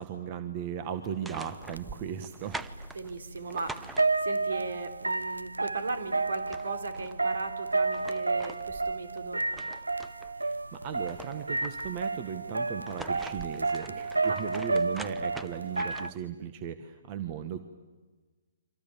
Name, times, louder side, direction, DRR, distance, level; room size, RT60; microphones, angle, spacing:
voice 1, 0.0-2.6 10.4-17.6, right 8 dB, 35° right, 10 dB, 1.6 m, -37 dB
sound 1, 1.0-4.5 6.0-6.1 6.3-7.2 7.7-10.3 10.7-12.1 12.7-16.3, right 3 dB, 5° right, 1.0 m, -45 dB
sound 2, 1.4-1.5 1.8-16.1, right 3 dB, 90° right, 0.9 m, -31 dB
voice 2, 2.9-9.5 14.2-14.4, right 3 dB, 70° right, 7 dB, 3.7 m, -37 dB
29.5 x 25.5 x 7.2 m, 1.3 s
figure-of-eight pair, 135°, 0 cm